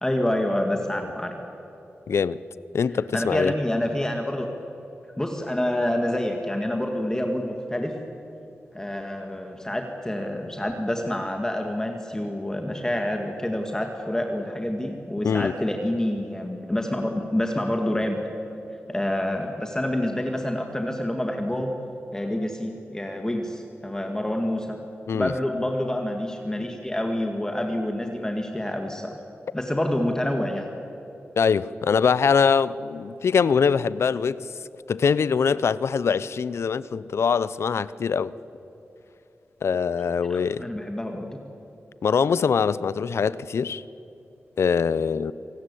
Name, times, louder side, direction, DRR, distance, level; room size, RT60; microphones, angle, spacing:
voice 1, 0.0-1.3 3.1-4.5 5.2-8.0 8.7-18.2 18.9-21.7 22.1-24.8 25.1-29.2 29.5-30.7 40.3-41.3, left 1 dB, 15° left, 1.9 m, -27 dB
voice 2, 2.1-2.4 2.7-3.5 15.2-15.5 25.1-25.3 31.4-34.5 34.9-38.3 39.6-40.7 42.0-43.8 44.6-45.3, left 6 dB, 80° left, 0.6 m, -23 dB
26.5 x 18.0 x 8.4 m
wide cardioid pair, 100°, 4 cm